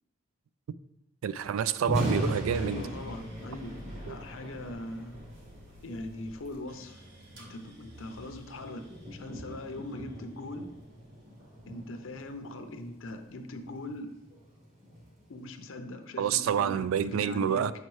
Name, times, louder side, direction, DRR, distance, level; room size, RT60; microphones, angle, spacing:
voice 1, 1.2-2.8 4.1-4.2 16.2-17.7, right 8 dB, 85° right, 15 dB, 0.3 m, -28 dB
Thunder, 1.7-15.9, equal, 35° right, 1.3 m, -40 dB
sound 1, 2.1-12.3 12.7-13.5, equal, 60° right, 1.3 m, -49 dB
voice 2, 2.5-5.2 5.8-7.0 7.3-8.9 9.1-10.7 11.7-14.1 15.3-17.6, left 1 dB, 75° left, 7 dB, 0.6 m, -41 dB
5.7 x 5.2 x 3.1 m, 0.88 s
head